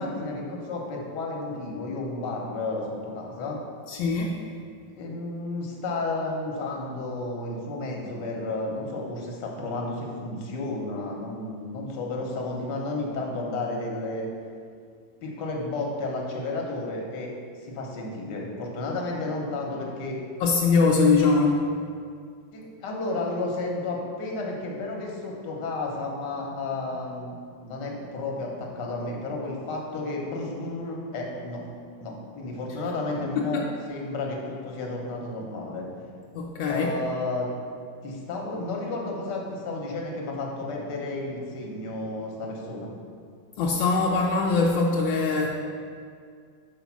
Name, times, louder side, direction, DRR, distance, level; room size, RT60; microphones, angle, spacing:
voice 1, 0.0-3.6 4.9-14.3 15.2-17.3 17.6-20.2 22.5-27.4 27.6-31.6 32.0-35.9 36.7-37.5 38.0-42.9, left 2 dB, 65° left, 0 dB, 1.6 m, -32 dB
voice 2, 3.9-4.4 20.4-21.6 33.4-33.7 36.3-36.9 43.6-45.5, left 4 dB, 85° left, -2 dB, 1.3 m, -22 dB
5.7 x 4.0 x 5.9 m, 2.1 s
omnidirectional pair, 2.0 m